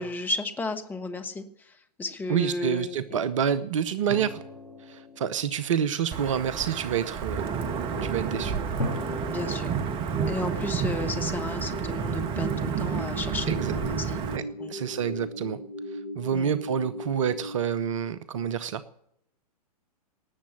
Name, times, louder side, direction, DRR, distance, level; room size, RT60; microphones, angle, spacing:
voice 1, 0.0-3.2 8.4-8.5 9.3-9.7 10.3-14.2 14.6-14.7 16.3-16.6, left 3 dB, 10° left, 7 dB, 1.4 m, -34 dB
voice 2, 2.3-4.4 4.8-7.5 8.0-8.5 13.5-13.7 14.3-14.4 14.7-15.6 15.9-18.8, right 8 dB, 55° right, 15 dB, 0.9 m, -28 dB
sound 1, 4.1-6.4 8.8-11.7, left 1 dB, 85° left, 1.8 m, -39 dB
Wind / Thunder / Rain, 6.1-14.4, right 6 dB, 25° right, 1.2 m, -30 dB
sound 2, 7.6-17.6, left 1 dB, 60° left, 2.3 m, -39 dB
19.0 x 7.4 x 9.8 m, 0.73 s
figure-of-eight pair, 105°, 20 cm